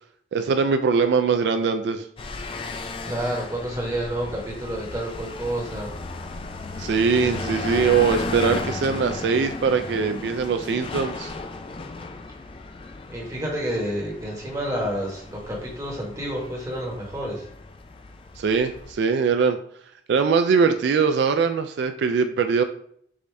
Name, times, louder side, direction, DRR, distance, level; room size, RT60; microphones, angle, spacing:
voice 1, 0.3-2.1 6.8-11.3 18.4-19.6 20.1-22.6, right 5 dB, 75° right, 8 dB, 0.3 m, -22 dB
sound 1, 2.2-18.9, left 3 dB, 30° left, 0.3 m, -35 dB
voice 2, 3.0-5.9 13.1-17.5, right 1 dB, 20° right, -3 dB, 1.2 m, -29 dB
4.8 x 2.6 x 3.3 m, 0.65 s
head